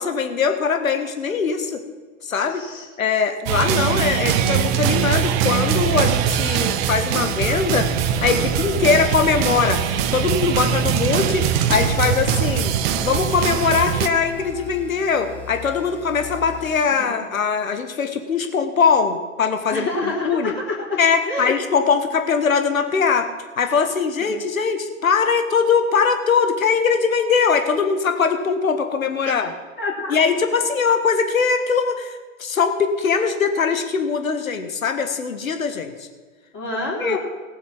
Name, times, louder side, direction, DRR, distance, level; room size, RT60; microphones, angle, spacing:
voice 1, 0.0-1.8 2.2-2.6 3.0-7.9 8.2-9.8 10.1-12.7 13.0-20.5 21.0-29.5 30.1-36.1 37.0-37.2, left 5 dB, 85° left, 7 dB, 1.7 m, -21 dB
voice 2, 2.5-2.8 16.9-17.2 19.7-21.0 21.3-21.5 24.2-24.3 29.8-30.2 36.5-37.2, left 2 dB, 30° left, -4 dB, 3.8 m, -27 dB
sound 1, 3.5-14.1, right 9 dB, 45° right, 1.2 m, -21 dB
sound 2, 7.2-16.8, left 1 dB, 5° left, 1.7 m, -37 dB
18.5 x 7.4 x 6.1 m, 1.4 s
hypercardioid pair, 110°, 40 cm